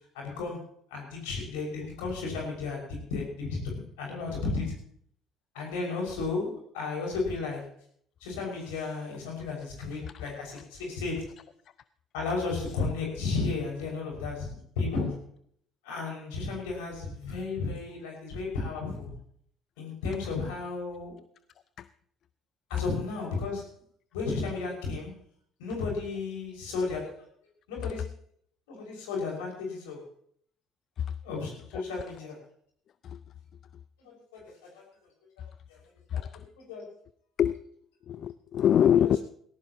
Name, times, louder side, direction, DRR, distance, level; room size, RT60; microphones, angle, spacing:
voice 1, 0.1-4.8 5.5-7.7 8.2-11.4 12.1-15.2 15.8-19.1 19.8-21.2 22.7-23.7 24.1-25.2 25.6-27.2 27.7-28.1 28.7-30.0 31.2-32.4 34.0-35.1 35.7-35.8 36.1-36.3 36.6-36.9 39.0-39.1, left 4 dB, 75° left, -1 dB, 6.1 m, -34 dB
voice 2, 36.1-36.5 37.4-37.6 38.0-39.2, left 9 dB, 55° left, 16 dB, 0.5 m, -25 dB
18.5 x 17.5 x 3.0 m, 0.63 s
hypercardioid pair, 50°, 0 cm